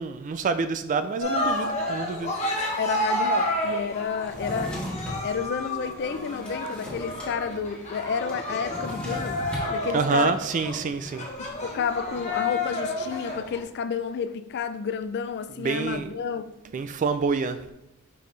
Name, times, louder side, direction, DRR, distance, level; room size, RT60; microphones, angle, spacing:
voice 1, 0.0-2.3 9.9-11.3 15.6-16.1 16.7-17.6, right 5 dB, 35° right, 10 dB, 0.3 m, -27 dB
Cheering, 1.2-13.6, left 1 dB, 30° left, 1.1 m, -30 dB
voice 2, 2.8-4.8 5.2-9.4 9.7-10.4 11.6-16.5, left 6 dB, 50° left, 11 dB, 0.4 m, -30 dB
Drawer open or close, 4.2-5.3 5.8-7.3 7.6-7.7 7.9-9.7, equal, 5° left, 1.5 m, -36 dB
5.8 x 5.2 x 3.2 m, 0.92 s
head